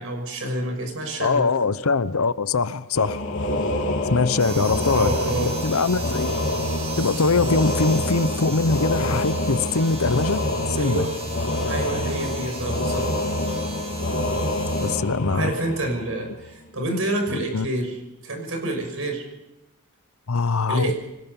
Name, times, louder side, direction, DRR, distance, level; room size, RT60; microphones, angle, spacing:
voice 1, 0.0-1.5 4.4-5.5 9.6-9.7 10.8-11.1 11.6-13.1 15.3-18.0 18.2-19.3 20.7-20.9, right 1 dB, 70° right, 6.0 m, -28 dB
voice 2, 1.2-3.2 4.0-5.1 5.6-6.4 6.9-11.1 14.8-15.5 17.3-17.7 20.3-20.9, left 4 dB, 85° left, 0.8 m, -22 dB
sound 1, 2.9-16.4, left 1 dB, 60° left, 3.5 m, -26 dB
sound 2, 4.4-15.0, right 5 dB, 25° right, 2.3 m, -38 dB
25.0 x 19.0 x 5.5 m
head